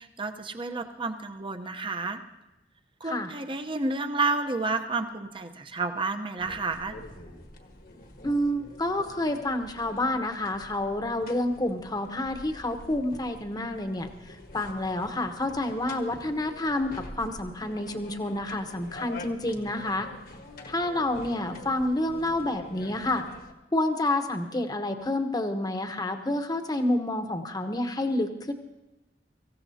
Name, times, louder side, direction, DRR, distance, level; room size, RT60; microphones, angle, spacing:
voice 1, 0.0-2.2 3.0-7.0, right 3 dB, 30° right, 6 dB, 0.9 m, -30 dB
sound 1, 6.4-23.5, left 2 dB, 55° left, 1.5 m, -46 dB
voice 2, 8.2-20.1 20.7-23.2 23.7-28.5, left 1 dB, 25° left, 6 dB, 1.1 m, -29 dB
24.0 x 15.0 x 2.8 m, 1.0 s
head